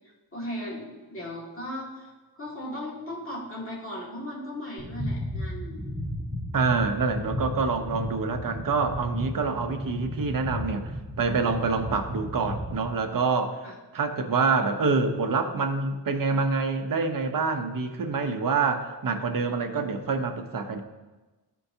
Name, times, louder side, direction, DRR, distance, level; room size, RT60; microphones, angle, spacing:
voice 1, 0.3-2.1 2.4-5.9 13.6-13.7, left 1 dB, 30° left, -6 dB, 2.0 m, -37 dB
sound 1, 4.8-12.9, left 1 dB, 10° right, 1.4 m, -34 dB
voice 2, 6.5-13.7 13.9-20.8, right 4 dB, 55° right, 5 dB, 0.8 m, -26 dB
13.0 x 4.6 x 2.7 m, 1.2 s
wide cardioid pair, 140°, 40 cm